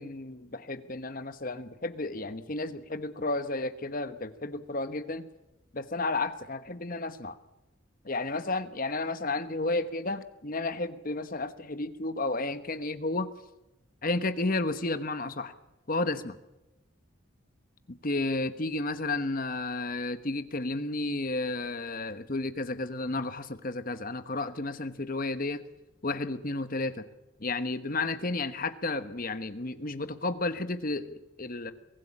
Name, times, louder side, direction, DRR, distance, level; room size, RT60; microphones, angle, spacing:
voice 1, 0.0-5.3 5.7-7.4 8.0-13.3 14.0-15.5 15.9-16.4 18.0-25.6 26.0-27.0 27.4-31.7, left 2 dB, 40° left, 11 dB, 1.1 m, -32 dB
23.0 x 15.5 x 8.7 m, 0.98 s
head